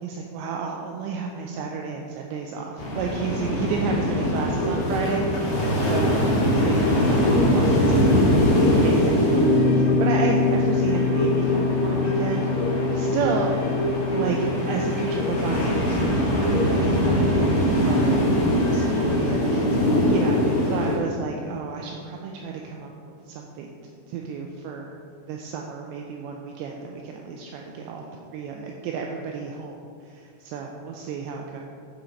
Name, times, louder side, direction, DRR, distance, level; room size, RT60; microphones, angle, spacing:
voice 1, 0.0-8.4 8.8-13.5 14.1-23.7 24.1-24.9 25.3-28.1 28.3-31.6, right 5 dB, 85° right, 1 dB, 2.6 m, -32 dB
sound 1, 2.8-21.0, equal, 45° left, 3.3 m, -23 dB
sound 2, 4.5-21.3 21.7-21.8, left 1 dB, 75° left, 2.6 m, -30 dB
sound 3, 9.3-15.7, left 3 dB, 65° right, 3.6 m, -25 dB
7.7 x 7.1 x 5.1 m, 2.3 s
omnidirectional pair, 5.5 m